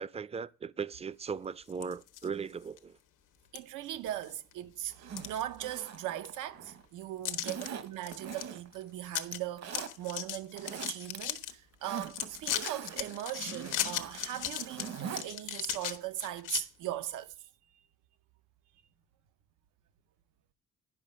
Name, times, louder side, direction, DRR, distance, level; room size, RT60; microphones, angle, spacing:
voice 1, 0.0-3.0, right 6 dB, 20° right, 0.4 m, -38 dB
sound 1, 1.7-2.3 2.8-2.9 3.6-3.7 4.1-4.5 4.9-6.0 6.3-6.4 7.3-7.7 8.0-8.4 8.7-8.8 9.1-9.4 9.7-11.5 12.0-16.6, left 11 dB, 85° left, 1.0 m, -37 dB
voice 2, 3.5-17.5, right 13 dB, 90° right, 0.8 m, -39 dB
Zipper (clothing), 4.9-6.8 7.4-8.8 9.2-9.9 10.4-11.2 11.5-15.3 15.6-15.7, right 7 dB, 60° right, 1.1 m, -43 dB
11.0 x 5.4 x 5.2 m
cardioid pair, 90°, 30 cm